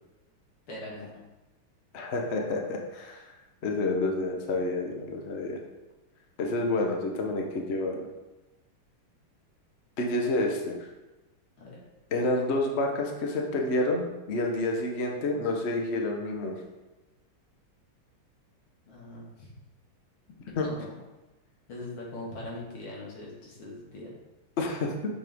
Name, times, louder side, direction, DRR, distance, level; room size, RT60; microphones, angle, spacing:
voice 1, 0.7-1.1 11.6-11.8 18.9-19.6 20.6-20.9 21.7-24.1, left 2 dB, 75° left, -4 dB, 2.7 m, -41 dB
voice 2, 1.9-3.2 3.6-5.6 6.4-8.1 10.0-10.8 12.1-16.6 20.6-20.7 24.6-24.9, left 2 dB, 50° left, 1 dB, 0.8 m, -29 dB
6.9 x 6.5 x 3.5 m, 1.1 s
omnidirectional pair, 2.4 m